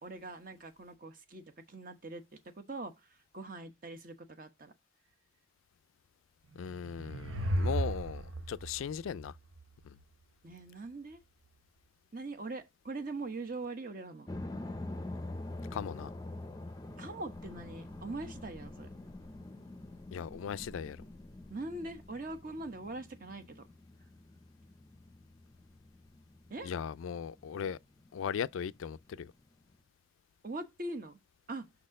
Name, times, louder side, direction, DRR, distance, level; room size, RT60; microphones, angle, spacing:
voice 1, 0.0-2.9 3.3-4.7 10.4-11.2 12.1-14.3 17.0-18.9 21.5-23.7 26.5-26.7 30.4-31.2 31.5-31.7, right 2 dB, 45° right, 1.0 m, -42 dB
voice 2, 6.5-9.3 9.8-10.0 15.7-16.1 20.1-21.0 26.6-27.8 28.1-29.3, left 7 dB, 90° left, 0.3 m, -38 dB
sound 1, 6.5-10.0, right 1 dB, 80° right, 0.8 m, -35 dB
sound 2, 14.3-29.8, left 2 dB, 20° left, 0.5 m, -46 dB
6.0 x 4.2 x 6.4 m
head